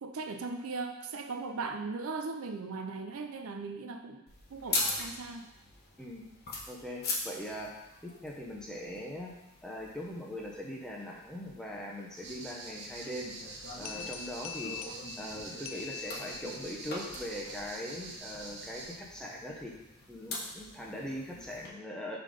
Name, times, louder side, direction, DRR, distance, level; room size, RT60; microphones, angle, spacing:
voice 1, 0.0-5.5, right 4 dB, 65° right, 6 dB, 0.5 m, -38 dB
sound 1, 4.3-21.7, left 3 dB, 45° left, 1.1 m, -42 dB
voice 2, 6.7-7.7 8.0-9.3 9.6-13.3 13.8-14.8 15.2-19.7 20.1-22.2, equal, 5° left, -3 dB, 0.8 m, -41 dB
sound 2, 12.2-18.9, right 2 dB, 50° right, 1.0 m, -45 dB
sound 3, 13.9-16.8, left 12 dB, 60° left, 0.4 m, -44 dB
5.6 x 3.8 x 5.0 m, 0.91 s
head